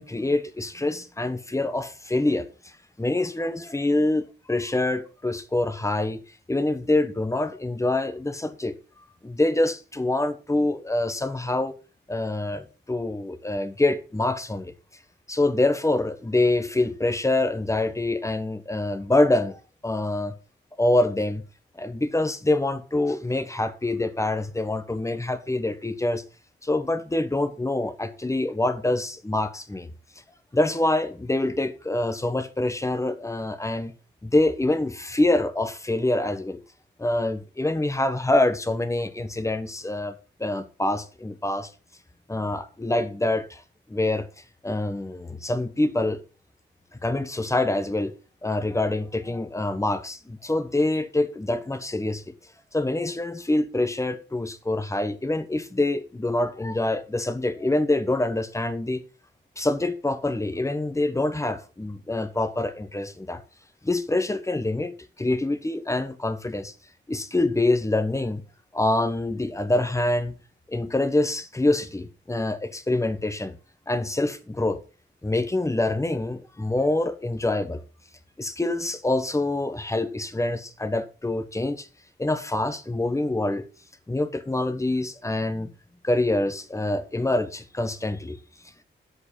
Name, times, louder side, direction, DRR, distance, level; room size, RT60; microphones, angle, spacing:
voice 1, 0.0-2.7 3.0-6.2 6.5-8.7 9.2-11.7 12.1-14.7 15.3-20.3 20.8-21.4 21.8-26.2 26.6-29.9 30.5-33.9 34.2-36.6 37.0-40.1 40.4-41.7 42.3-43.6 43.9-44.3 44.6-46.2 47.0-48.1 48.4-52.3 52.7-59.0 59.6-63.4 63.8-64.9 65.2-66.7 67.1-68.4 68.7-70.3 70.7-73.6 73.9-74.8 75.2-77.8 78.4-81.9 82.2-83.6 84.1-85.7 86.0-88.4, left 2 dB, 15° left, 1.4 m, -25 dB
11.0 x 7.9 x 5.5 m
wide cardioid pair, 115°, 19 cm